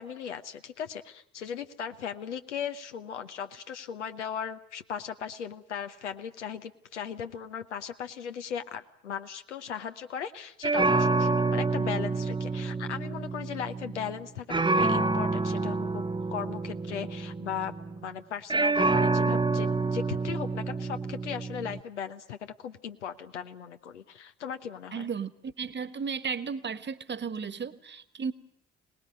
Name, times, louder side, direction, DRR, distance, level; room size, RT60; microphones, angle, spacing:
voice 1, 0.0-16.0 16.3-25.1, left 8 dB, 80° left, 9 dB, 1.0 m, -37 dB
sound 1, 10.6-14.2 14.5-18.1 18.5-21.8, right 3 dB, 15° right, 0.9 m, -28 dB
voice 2, 24.9-28.3, right 6 dB, 30° right, 15 dB, 1.5 m, -34 dB
25.0 x 19.5 x 9.3 m, 0.73 s
figure-of-eight pair, 45°, 35 cm